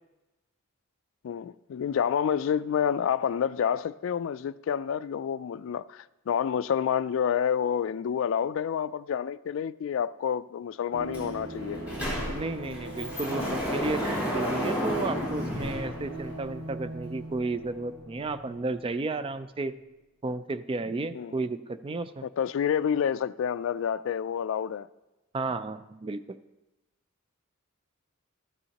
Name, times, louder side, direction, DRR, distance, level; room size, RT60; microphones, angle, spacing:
voice 1, 1.2-11.8 21.1-21.3 22.2-24.9, left 8 dB, 65° left, 0.3 m, -28 dB
sound 1, 10.9-19.4 19.7-19.8, right 1 dB, 75° right, 1.9 m, -41 dB
Sliding door, 11.1-11.2 11.6-16.6, equal, 10° right, 4.0 m, -32 dB
voice 2, 12.3-19.8 20.2-22.3 25.3-26.4, right 3 dB, 25° right, 0.4 m, -33 dB
13.5 x 9.8 x 2.9 m
head